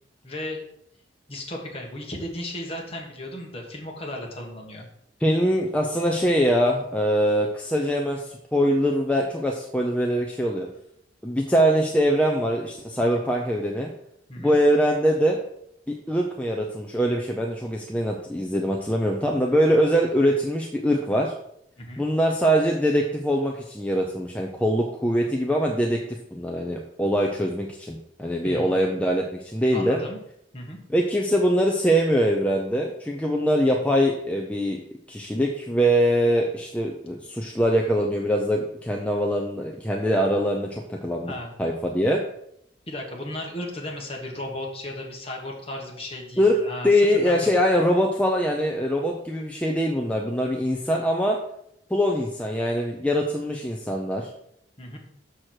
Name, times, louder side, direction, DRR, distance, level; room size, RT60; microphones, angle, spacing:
voice 1, 0.2-0.6 1.3-4.8 14.3-14.6 21.8-22.0 28.4-28.8 29.7-30.2 30.5-30.8 41.3-41.5 42.9-47.5 54.8-55.0, left 1 dB, 30° left, 0 dB, 1.5 m, -35 dB
voice 2, 5.2-10.7 11.2-13.9 14.4-15.4 15.9-21.3 22.0-30.0 30.9-34.8 35.1-41.3 41.6-42.2 46.4-46.6 46.8-51.4 51.9-54.3, equal, 5° left, 0 dB, 0.6 m, -23 dB
6.3 x 6.3 x 4.5 m, 0.73 s
head